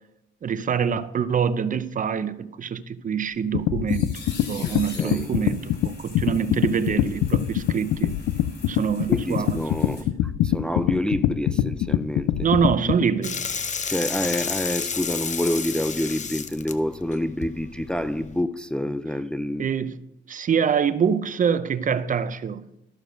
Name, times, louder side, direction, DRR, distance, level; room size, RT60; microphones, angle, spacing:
voice 1, 0.4-4.1 4.5-8.2 8.6-9.6 12.4-13.4 19.6-20.0 20.3-22.7, right 7 dB, 40° right, 0.6 m, -25 dB
sound 1, 3.3-10.0, left 3 dB, 60° left, 3.5 m, -44 dB
sound 2, 3.5-13.0, left 12 dB, 85° left, 0.5 m, -23 dB
voice 2, 4.6-5.3 9.1-12.4 13.9-19.7, left 1 dB, 5° left, 0.4 m, -28 dB
sound 3, 13.2-18.4, left 6 dB, 35° left, 0.7 m, -31 dB
13.0 x 6.6 x 5.1 m
cardioid pair, 90°, 20 cm